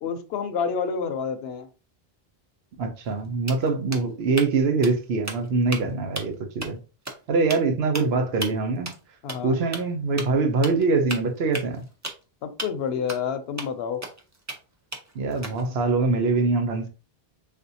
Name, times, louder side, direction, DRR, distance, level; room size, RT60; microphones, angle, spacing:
voice 1, 0.0-1.7 9.2-9.6 12.4-14.0, left 6 dB, 80° left, 0.8 m, -29 dB
voice 2, 2.8-6.8 7.3-8.9 9.4-11.9 15.1-16.9, right 3 dB, 85° right, 0.9 m, -23 dB
sound 1, 3.0-3.2 3.5-4.5 4.8-5.0 5.2-5.8 6.2-6.3 6.6-6.7 7.1-7.2 7.5-7.6 7.9-8.1 8.4-8.5 8.9-9.0 9.3-9.4 9.7-9.8 10.2-10.3 10.6-10.8 11.1-12.2 12.6-12.7 13.1-13.2 13.6-13.7 14.0-14.6 14.9-15.7, right 2 dB, 25° right, 0.4 m, -34 dB
3.5 x 2.5 x 2.7 m
omnidirectional pair, 1.0 m